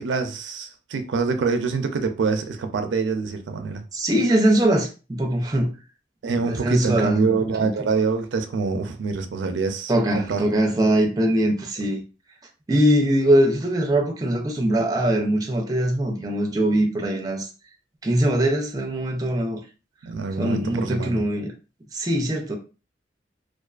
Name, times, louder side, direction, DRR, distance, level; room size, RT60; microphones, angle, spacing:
voice 1, 0.0-3.8 6.2-10.4 20.0-21.2, right 4 dB, 90° right, 0.4 m, -25 dB
voice 2, 3.9-5.8 6.5-7.7 9.9-12.0 12.7-17.5 18.0-19.6 20.4-21.5 21.9-22.6, right 1 dB, 20° right, 0.4 m, -22 dB
2.4 x 2.3 x 2.3 m
head